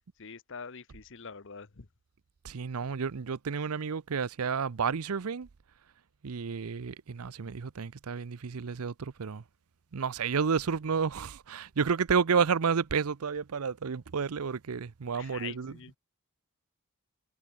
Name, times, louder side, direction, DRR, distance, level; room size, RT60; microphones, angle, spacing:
voice 1, 0.2-1.9 15.1-15.9, left 6 dB, 55° left, 1.0 m, -44 dB
voice 2, 2.4-5.5 6.2-9.4 9.9-15.7, right 6 dB, 80° right, 0.6 m, -31 dB
head